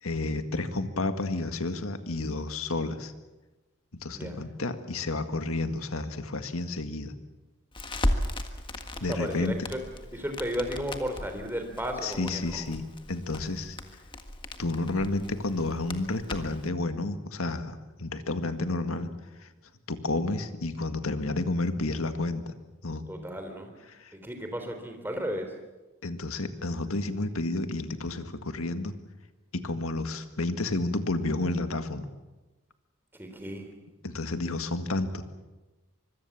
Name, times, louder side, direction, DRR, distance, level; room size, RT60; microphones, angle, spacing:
voice 1, 0.0-3.1 3.9-7.1 9.0-9.6 12.0-13.8 14.6-19.1 19.4-19.5 19.9-22.5 22.8-23.0 23.9-24.1 26.0-28.9 29.5-32.1 34.0-35.2, left 2 dB, 85° left, 9 dB, 1.9 m, -31 dB
Crackle, 7.7-16.7, left 1 dB, 25° left, 1.6 m, -36 dB
voice 2, 9.1-9.8 10.1-12.8 23.1-23.7 24.1-25.5 33.1-33.8, equal, 10° right, 5 dB, 3.5 m, -34 dB
25.0 x 22.5 x 7.3 m, 1.1 s
head